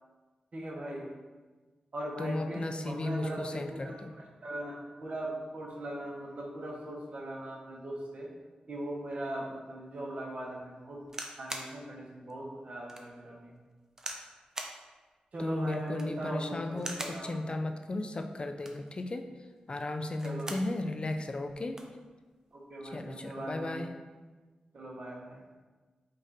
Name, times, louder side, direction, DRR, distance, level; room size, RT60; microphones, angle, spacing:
voice 1, 0.5-1.1 1.9-8.3 8.7-11.0 11.4-13.5 15.3-17.4 20.2-20.5 22.5-23.8 24.7-25.4, right 1 dB, 60° right, -2 dB, 1.0 m, -39 dB
voice 2, 2.2-4.1 15.4-19.3 19.7-22.0 22.8-23.9, left 2 dB, 40° left, 6 dB, 0.3 m, -35 dB
sound 1, 11.0-11.7 12.3-12.4 12.9-13.1 14.0-14.3 14.6-14.8 15.8-16.2 16.8-17.2 18.5-18.9 20.0-20.7 21.1-21.2 21.4-21.9 22.8-23.1, right 1 dB, 20° right, 0.6 m, -41 dB
5.1 x 2.5 x 4.1 m, 1.3 s
cardioid pair, 65°, 3 cm